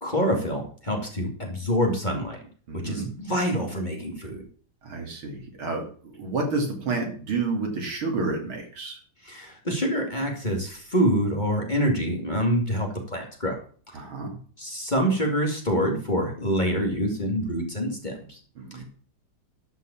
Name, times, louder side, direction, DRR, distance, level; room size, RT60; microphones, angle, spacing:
voice 1, 0.0-2.4 2.7-4.4 9.2-13.6 14.6-18.4 18.8-18.9, equal, 20° left, 1 dB, 2.6 m, -26 dB
voice 2, 2.7-3.1 4.8-9.0 13.9-14.4 18.6-18.8, right 3 dB, 75° right, 2 dB, 3.6 m, -30 dB
12.5 x 5.7 x 7.1 m, 0.43 s
omnidirectional pair, 2.3 m